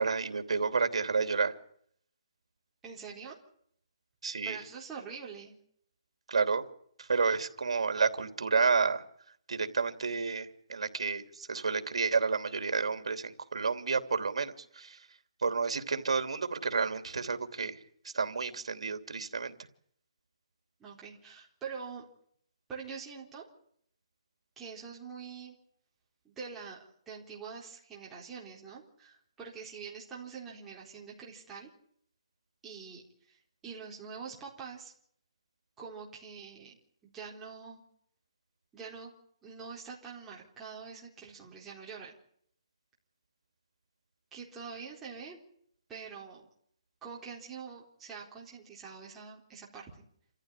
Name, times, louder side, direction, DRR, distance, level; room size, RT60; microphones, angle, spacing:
voice 1, 0.0-1.6 4.2-4.6 6.3-6.6 7.0-9.0 9.5-15.0 15.4-17.8 18.0-19.5, right 4 dB, 80° right, 8 dB, 3.0 m, -30 dB
voice 2, 2.8-3.4 4.4-5.5 20.8-22.1 22.7-23.5 24.6-25.5 26.2-26.8 27.1-31.7 32.6-34.9 35.8-36.8 37.0-37.8 38.7-39.1 39.4-42.1 44.3-45.4 45.9-46.5 47.0-50.0, right 6 dB, 10° right, -4 dB, 4.1 m, -45 dB
28.0 x 15.0 x 9.9 m, 0.68 s
hypercardioid pair, 175°, 3 cm